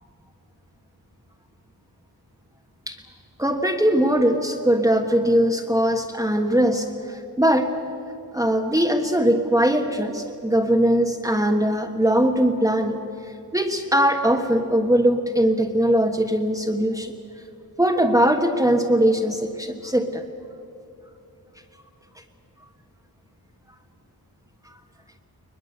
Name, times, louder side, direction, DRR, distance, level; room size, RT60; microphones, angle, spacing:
voice 1, 3.4-7.7 8.3-17.1 17.8-20.2, equal, 10° right, 2 dB, 1.5 m, -21 dB
21.5 x 21.5 x 8.1 m, 2.8 s
wide cardioid pair, 95°, 38 cm